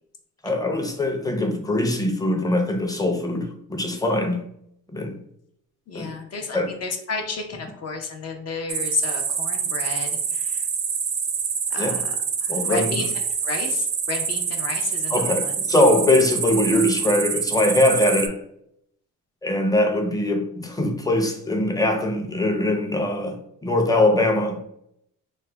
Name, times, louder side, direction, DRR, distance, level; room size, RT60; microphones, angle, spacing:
voice 1, 0.4-4.4 4.9-5.2 5.9-6.1 6.5-6.7 11.8-12.0 12.5-13.0 15.1-18.4 19.4-24.6, left 1 dB, 10° left, 0.6 m, -22 dB
voice 2, 5.9-10.6 11.7-12.1 12.4-15.5, left 4 dB, 50° left, 0.6 m, -32 dB
sound 1, 8.7-18.3, right 6 dB, 35° right, 0.4 m, -26 dB
3.2 x 2.2 x 3.3 m
cardioid pair, 95°, 33 cm